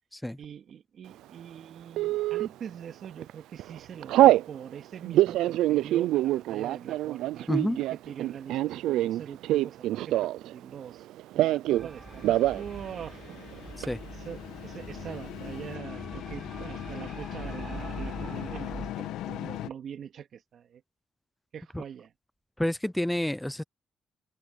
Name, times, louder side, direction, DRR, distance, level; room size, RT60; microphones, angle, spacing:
voice 1, 0.4-11.0 11.3-13.2 14.1-20.8 21.5-22.1, right 8 dB, 60° right, 2.8 m, -43 dB
Telephone, 2.0-2.5 3.0-3.3 3.6-4.5 5.0-10.5 10.8-11.9 12.2-12.6 12.9-13.0 13.3-13.9, right 15 dB, 90° right, 0.3 m, -25 dB
sound 1, 11.7-18.9, right 4 dB, 25° right, 1.0 m, -44 dB
sound 2, 11.9-19.7, left 13 dB, 90° left, 1.2 m, -40 dB
voice 2, 22.6-23.6, left 1 dB, 5° left, 0.5 m, -28 dB
cardioid pair, 90°, 0 cm